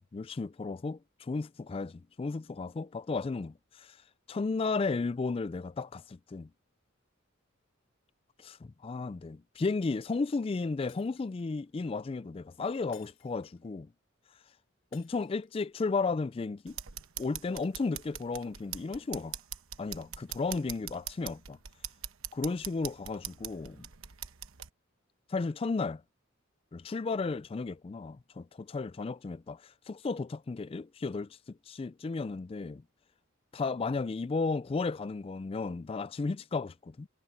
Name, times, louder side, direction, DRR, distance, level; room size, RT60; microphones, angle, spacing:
voice 1, 0.1-4.0 4.3-6.5 8.4-13.9 14.9-16.8 17.2-19.4 19.8-21.6 22.3-23.9 25.3-26.0 26.7-32.8 33.5-37.1, left 4 dB, 25° left, 0.3 m, -34 dB
Shatter, 10.9-11.6 12.9-13.7 14.9-15.7, left 11 dB, 65° left, 5.7 m, -61 dB
sound 1, 16.7-24.7, right 11 dB, 90° right, 1.1 m, -43 dB
head